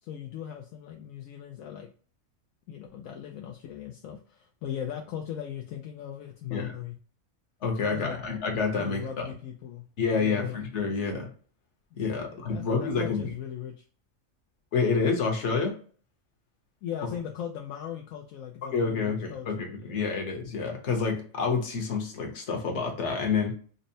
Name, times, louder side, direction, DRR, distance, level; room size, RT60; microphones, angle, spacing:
voice 1, 0.0-1.9 2.7-7.0 7.8-8.2 8.7-9.8 10.1-10.6 11.9-13.8 16.8-20.0, left 9 dB, 80° left, 2 dB, 1.0 m, -39 dB
voice 2, 7.6-9.3 10.0-11.3 12.0-13.3 14.7-15.8 18.6-23.5, left 5 dB, 60° left, 2 dB, 1.2 m, -28 dB
5.3 x 2.1 x 2.6 m, 0.43 s
omnidirectional pair, 1.4 m